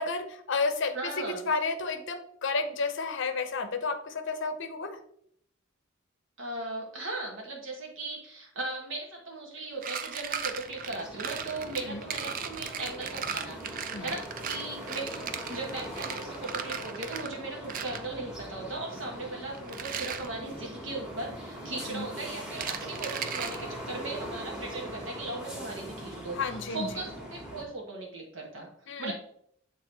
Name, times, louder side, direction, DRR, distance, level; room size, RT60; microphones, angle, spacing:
voice 1, 0.0-5.0 11.9-12.0 13.9-14.0 21.8-22.1 26.3-26.9 28.9-29.1, left 4 dB, 60° left, 9 dB, 0.6 m, -31 dB
voice 2, 0.9-1.4 6.4-28.7 29.0-29.1, right 2 dB, 65° right, -1 dB, 1.2 m, -38 dB
sound 1, 9.7-17.4 17.7-18.0 19.5-20.3 22.5-23.6, right 7 dB, 40° right, 0.4 m, -37 dB
sound 2, 10.2-27.6, equal, 5° right, 1.5 m, -42 dB
7.7 x 3.7 x 3.3 m, 0.67 s
head